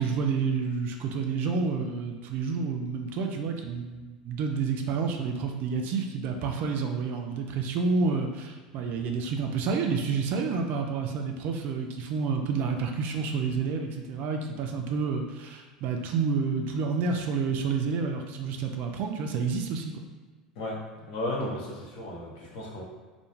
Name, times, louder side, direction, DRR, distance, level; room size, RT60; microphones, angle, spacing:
voice 1, 0.0-19.9, right 5 dB, 45° right, 3 dB, 0.3 m, -29 dB
voice 2, 20.6-22.8, left 1 dB, 55° left, -3 dB, 0.6 m, -34 dB
2.2 x 2.1 x 3.0 m, 1.4 s
figure-of-eight pair, 80°, 4 cm